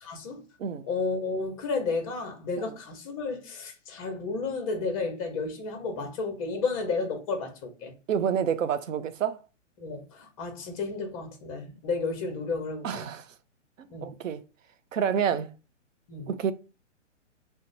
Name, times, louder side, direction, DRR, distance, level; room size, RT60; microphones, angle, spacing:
voice 1, 0.0-0.4 0.9-7.9 9.8-13.1 13.9-14.1 16.1-16.3, left 4 dB, 30° left, 0.8 m, -32 dB
voice 2, 8.1-9.4 12.8-13.3 13.8-14.4 14.9-15.5 16.3-16.5, right 8 dB, 90° right, 0.6 m, -28 dB
2.8 x 2.1 x 4.0 m
hypercardioid pair, 155°, 37 cm